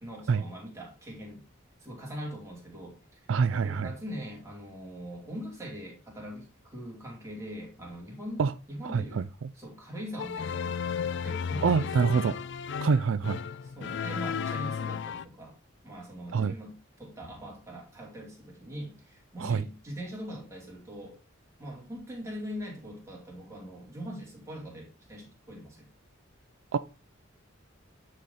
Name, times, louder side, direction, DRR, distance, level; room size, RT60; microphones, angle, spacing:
voice 1, 0.0-1.4 1.8-3.2 3.5-9.2 9.5-10.8 11.2-12.0 13.8-15.5 15.8-21.2 21.6-25.9, equal, 15° right, 2.8 m, -42 dB
voice 2, 3.3-3.9 8.4-8.5 8.8-9.2 11.6-12.3 12.8-13.4 16.3-16.5 19.4-19.6 26.7-26.8, right 5 dB, 70° right, 0.4 m, -25 dB
sound 1, 10.2-15.2, left 6 dB, 60° left, 0.4 m, -34 dB
9.5 x 4.2 x 3.9 m
head